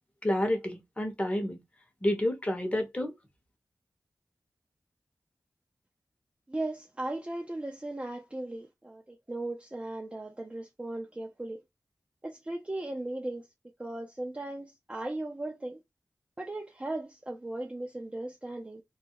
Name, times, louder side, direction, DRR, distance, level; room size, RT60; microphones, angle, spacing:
voice 1, 0.2-1.6 2.0-3.1, left 1 dB, 20° left, 0.8 m, -29 dB
voice 2, 6.5-11.6 12.2-13.5 13.8-15.8 16.4-18.8, right 2 dB, 20° right, 0.5 m, -37 dB
2.3 x 2.0 x 2.8 m
cardioid pair, 60°, 7 cm